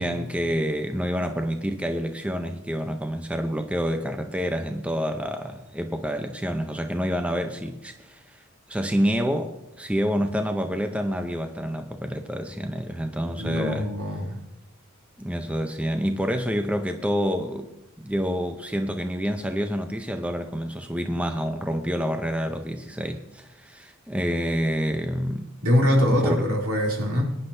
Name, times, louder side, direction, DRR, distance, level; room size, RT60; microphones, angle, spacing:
voice 1, 0.0-8.4 8.7-13.9 15.2-25.5 26.1-26.4, equal, 5° right, 0.6 m, -28 dB
voice 2, 13.4-14.4 25.6-27.4, left 1 dB, 90° right, 3.0 m, -23 dB
20.5 x 10.0 x 2.7 m
head